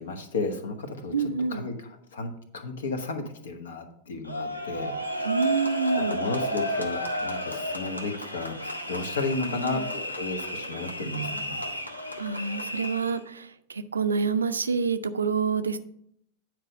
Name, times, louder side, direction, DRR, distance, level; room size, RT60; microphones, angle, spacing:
voice 1, 0.0-4.9 5.3-11.6, left 3 dB, 65° left, 7 dB, 1.2 m, -34 dB
voice 2, 1.1-1.6 5.2-6.2 9.4-9.8 12.2-15.8, right 5 dB, 75° right, 12 dB, 0.5 m, -27 dB
sound 1, 4.3-13.2, equal, 85° left, 0.9 m, -32 dB
9.3 x 4.7 x 5.3 m, 0.70 s
figure-of-eight pair, 90°, 0 cm